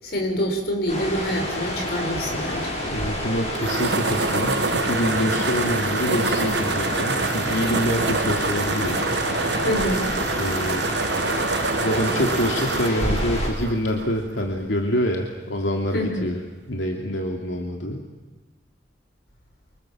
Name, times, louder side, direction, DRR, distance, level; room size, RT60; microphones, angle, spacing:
voice 1, 0.0-2.8 9.6-10.1 15.9-16.3, equal, 55° left, 3 dB, 6.4 m, -26 dB
sound 1, 0.9-13.5, left 1 dB, 35° left, 7.2 m, -29 dB
sound 2, 2.8-14.7, right 3 dB, 70° right, 1.4 m, -26 dB
voice 2, 2.9-9.0 10.4-10.8 11.8-16.4 16.7-18.0, equal, 80° left, 2 dB, 2.8 m, -26 dB
29.0 x 26.0 x 7.4 m, 1.2 s
head